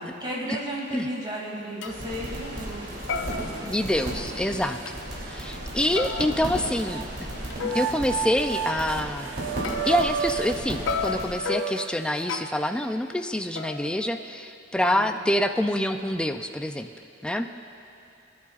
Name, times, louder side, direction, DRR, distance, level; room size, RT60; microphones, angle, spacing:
voice 1, 0.0-3.7 14.8-15.2, equal, 25° right, -5 dB, 2.6 m, -35 dB
sound 1, 1.2-1.3 1.8-2.0 2.4-2.8 3.1-4.4 4.9-5.0 6.0-8.0 9.6-10.6 10.9-12.8 13.6-14.7, left 5 dB, 85° left, 0.6 m, -34 dB
sound 2, 1.8-11.3, right 1 dB, 55° right, 3.1 m, -35 dB
sound 3, 2.6-2.7 3.2-4.1 4.7-4.8 5.9-7.1 7.6-12.5, right 6 dB, 80° right, 0.4 m, -33 dB
voice 2, 3.6-4.8 5.3-7.0 7.6-9.3 9.8-16.9 17.2-17.5, left 1 dB, 5° left, 6 dB, 0.4 m, -26 dB
21.0 x 11.0 x 2.4 m, 2.7 s
head